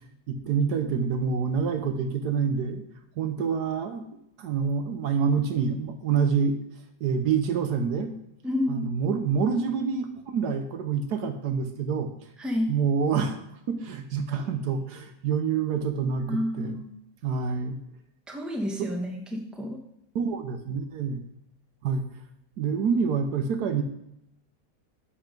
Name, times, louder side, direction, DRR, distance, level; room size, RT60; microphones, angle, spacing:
voice 1, 0.3-2.8 3.2-4.1 4.4-6.6 7.0-8.2 8.7-12.1 12.7-13.4 13.7-16.8 17.2-17.8 18.8-18.9 20.1-21.3 21.8-22.0 22.6-23.8, right 6 dB, 70° right, 7 dB, 1.3 m, -27 dB
voice 2, 8.4-8.9 12.4-12.7 16.3-16.9 18.3-19.8, left 1 dB, ahead, 1 dB, 1.0 m, -29 dB
11.5 x 4.7 x 5.2 m, 0.79 s
omnidirectional pair, 1.8 m